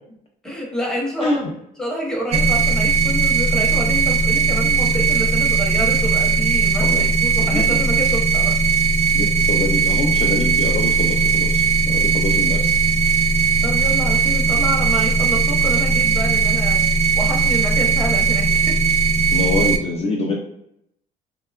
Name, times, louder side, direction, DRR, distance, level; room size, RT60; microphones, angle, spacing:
voice 1, 0.4-1.4 1.8-8.6 13.6-16.8 17.1-18.8, equal, 5° left, -3 dB, 0.8 m, -28 dB
voice 2, 1.2-1.5 6.8-7.1 7.4-7.8 9.1-12.7 19.3-20.4, left 2 dB, 35° left, 0 dB, 0.4 m, -25 dB
sound 1, 2.3-19.8, right 4 dB, 40° right, 0.4 m, -18 dB
2.7 x 2.2 x 2.3 m, 0.76 s
cardioid pair, 110°, 17 cm